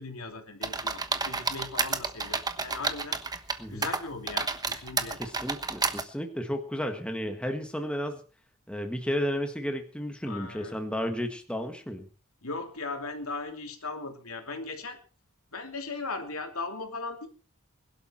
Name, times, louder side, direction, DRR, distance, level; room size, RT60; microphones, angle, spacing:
voice 1, 0.0-3.2 3.7-5.2 10.2-10.7 12.4-15.0 15.5-17.3, left 3 dB, 75° left, 4 dB, 3.1 m, -38 dB
sound 1, 0.6-3.6 3.8-6.0, right 4 dB, 20° right, 1.2 m, -30 dB
voice 2, 5.2-8.2 8.7-12.1, equal, 5° left, 4 dB, 1.7 m, -33 dB
21.5 x 12.0 x 4.5 m, 0.37 s
head